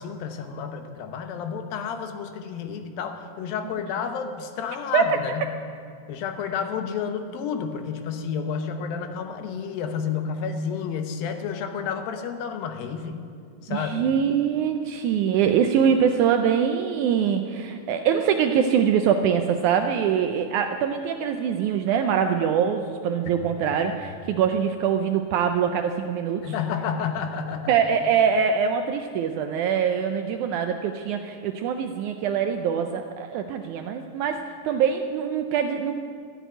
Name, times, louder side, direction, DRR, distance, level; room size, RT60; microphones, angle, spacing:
voice 1, 0.0-5.5 6.1-13.2 13.6-14.1 26.4-27.8, left 6 dB, 75° left, 6 dB, 2.7 m, -30 dB
voice 2, 13.7-26.5 27.7-35.9, right 7 dB, 90° right, 5 dB, 1.7 m, -23 dB
14.5 x 8.1 x 9.0 m, 2.3 s
omnidirectional pair, 4.3 m